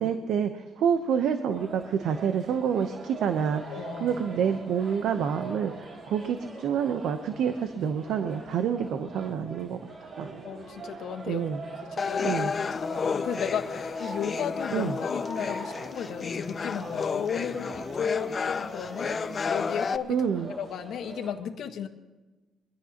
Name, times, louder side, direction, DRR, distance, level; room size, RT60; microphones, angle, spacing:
voice 1, 0.0-3.6 4.0-5.7 6.1-9.8 10.2-10.4 11.3-11.6 12.2-12.5 14.7-14.9 20.1-20.5, right 7 dB, 80° right, 8 dB, 0.8 m, -27 dB
sound 1, 1.5-21.3, right 3 dB, 55° right, 5.3 m, -43 dB
voice 2, 3.7-4.3 10.4-11.5 11.8-20.3 20.6-21.9, left 8 dB, 75° left, 6 dB, 1.4 m, -34 dB
sound 2, 12.0-20.0, left 5 dB, 40° left, 0.6 m, -32 dB
23.0 x 16.0 x 2.9 m, 1.2 s
cardioid pair, 90°, 0 cm